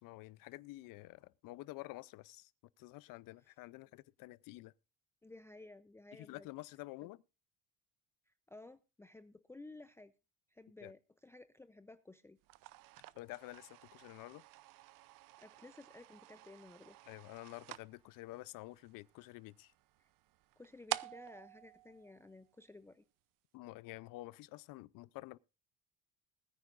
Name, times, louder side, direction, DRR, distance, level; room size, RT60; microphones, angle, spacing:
voice 1, 0.0-2.5 2.8-4.7 6.1-7.2 10.8-10.9 13.1-14.4 17.0-19.7 23.5-25.4, left 19 dB, 75° left, 0.6 m, -50 dB
voice 2, 5.2-6.5 7.0-7.1 8.3-10.1 10.5-12.4 15.4-17.0 20.0-20.1 20.6-23.0, left 2 dB, 10° left, 0.5 m, -55 dB
sound 1, 12.4-22.8, right 17 dB, 70° right, 0.6 m, -49 dB
20.5 x 9.6 x 2.5 m
cardioid pair, 120°, 34 cm